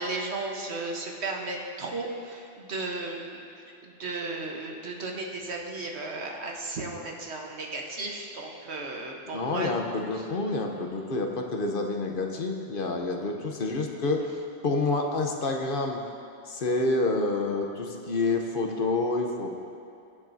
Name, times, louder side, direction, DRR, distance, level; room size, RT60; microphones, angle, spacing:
voice 1, 0.0-3.4 3.8-9.7, right 2 dB, 75° right, 0 dB, 1.4 m, -35 dB
voice 2, 9.3-14.2 14.6-16.0 16.5-19.6, left 3 dB, 55° left, 3 dB, 1.0 m, -28 dB
22.0 x 7.4 x 2.7 m, 2.5 s
omnidirectional pair, 1.1 m